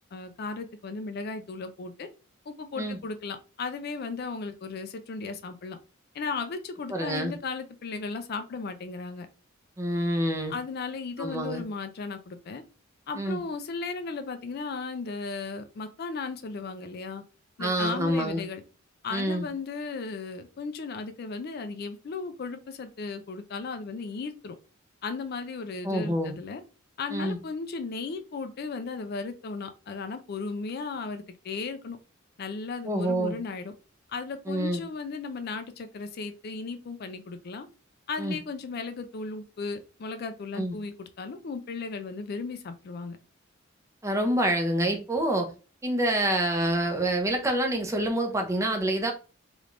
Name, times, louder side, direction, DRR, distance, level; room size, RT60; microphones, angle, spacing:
voice 1, 0.1-2.1 2.5-5.8 6.1-9.3 10.5-12.6 13.1-17.2 17.6-18.6 19.0-24.5 25.0-26.6 27.0-32.0 32.4-33.7 34.1-37.7 38.1-43.2, left 4 dB, 50° left, 0.4 m, -36 dB
voice 2, 6.9-7.3 9.8-10.5 11.2-11.6 13.2-13.4 17.6-18.4 19.1-19.5 25.8-26.3 27.1-27.4 32.8-33.4 34.5-34.8 38.2-38.4 40.6-40.7 44.0-45.5 45.8-49.1, right 1 dB, 15° right, 0.6 m, -27 dB
3.3 x 3.0 x 2.5 m
head